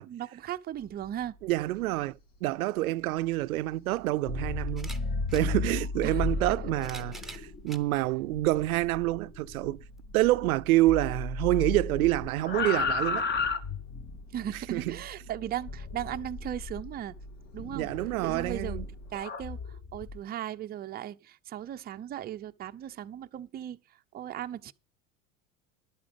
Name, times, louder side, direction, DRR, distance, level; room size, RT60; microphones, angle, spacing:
voice 1, 0.0-1.4 6.0-6.2 6.5-6.6 14.3-17.2 17.5-17.9 18.2-18.8 19.1-23.8 24.1-24.7, right 11 dB, 25° right, 0.6 m, -37 dB
sound 1, 0.7-19.2, equal, 55° left, 2.9 m, -51 dB
voice 2, 1.4-4.9 5.3-9.8 10.1-13.3 14.7-14.9 17.7-18.9, right 17 dB, 90° right, 0.6 m, -27 dB
sound 2, 4.1-10.6 10.8-14.3 15.7-16.9 17.6-20.2, left 4 dB, 25° left, 1.0 m, -34 dB
sound 3, 4.7-5.5 6.5-7.9 8.6-8.7 10.0-10.1, right 2 dB, ahead, 0.9 m, -46 dB
11.5 x 8.5 x 5.1 m
supercardioid pair, 110°, 41 cm